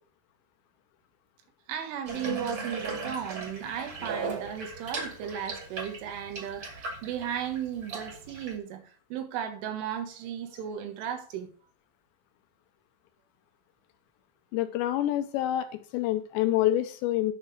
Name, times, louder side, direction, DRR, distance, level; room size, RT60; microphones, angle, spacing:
voice 1, 1.7-11.5, right 9 dB, 85° right, 4.0 m, -35 dB
Water tap faucet / Bathtub (filling or washing), 2.1-8.5, right 3 dB, 35° right, 2.2 m, -37 dB
voice 2, 14.5-15.7 15.9-17.3, left 13 dB, 80° left, 2.7 m, -26 dB
10.5 x 6.0 x 4.7 m
omnidirectional pair, 5.5 m